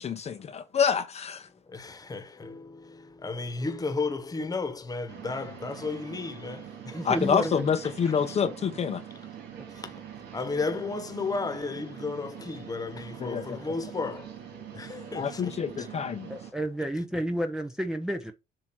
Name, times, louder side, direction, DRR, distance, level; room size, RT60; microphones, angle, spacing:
voice 1, 0.0-1.5 7.0-9.0 13.2-13.4 15.1-16.3, left 7 dB, 40° left, 0.7 m, -27 dB
voice 2, 1.5-7.3 7.8-8.3 9.7-10.0 10.3-15.9, left 3 dB, 20° left, 1.3 m, -34 dB
sound 1, 5.1-16.5, right 9 dB, 75° right, 2.3 m, -44 dB
voice 3, 6.9-7.7 16.3-18.3, equal, 5° right, 0.6 m, -31 dB
7.5 x 2.8 x 5.7 m
cardioid pair, 110°, 17 cm